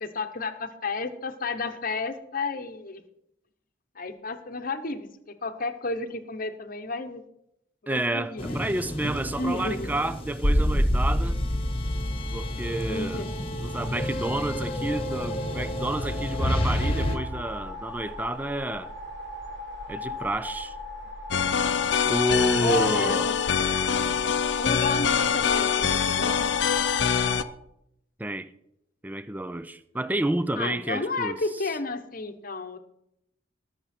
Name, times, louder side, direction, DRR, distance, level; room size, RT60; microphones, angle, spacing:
voice 1, 0.0-3.0 3.9-5.1 5.4-7.2 7.8-8.4 9.4-9.9 12.9-13.3 22.6-23.3 24.6-26.5 30.6-32.8, left 3 dB, 45° left, 1.0 m, -31 dB
voice 2, 7.9-11.4 12.3-13.3 13.6-18.9 19.9-20.7 22.1-23.3 28.2-28.5 29.0-31.4, right 1 dB, 10° right, 0.4 m, -30 dB
sound 1, 8.4-17.2, equal, 30° left, 1.4 m, -28 dB
sound 2, 11.5-27.4, left 1 dB, 70° right, 2.9 m, -40 dB
sound 3, 21.3-27.4, left 7 dB, 60° left, 0.5 m, -24 dB
18.0 x 6.7 x 4.4 m
head